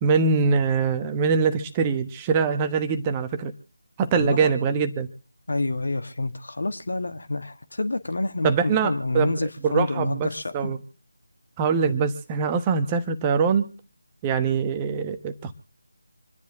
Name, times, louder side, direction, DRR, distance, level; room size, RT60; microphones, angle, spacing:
voice 1, 0.0-3.5 4.0-5.1 8.4-9.3 9.6-10.3 10.5-10.8 11.6-13.7 14.2-15.5, right 5 dB, 15° right, 1.1 m, -23 dB
voice 2, 4.2-4.5 5.5-10.7, left 2 dB, 60° left, 1.8 m, -28 dB
27.5 x 10.5 x 3.6 m
figure-of-eight pair, 160°, 0 cm